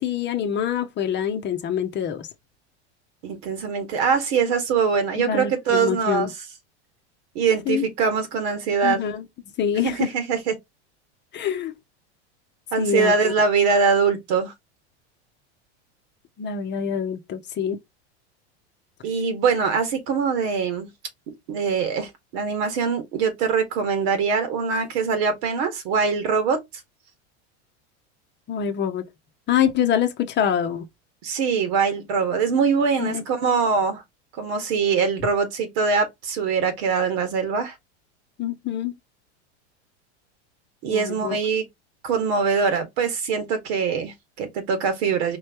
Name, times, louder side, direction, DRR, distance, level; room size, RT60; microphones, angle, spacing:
voice 1, 0.0-2.3 5.2-6.3 7.7-7.9 8.8-9.3 9.6-10.1 11.3-11.7 12.8-13.3 16.4-17.8 28.5-29.1 29.5-30.9 33.0-33.2 38.4-38.9 40.9-41.4, left 8 dB, 30° left, 0.8 m, -25 dB
voice 2, 3.2-6.3 7.4-9.0 9.8-10.6 12.7-14.5 19.0-20.9 21.5-26.6 31.2-34.0 34.4-37.7 40.8-41.7 42.0-45.4, right 5 dB, 65° right, 1.8 m, -23 dB
4.5 x 3.2 x 2.9 m
supercardioid pair, 115°, 35 cm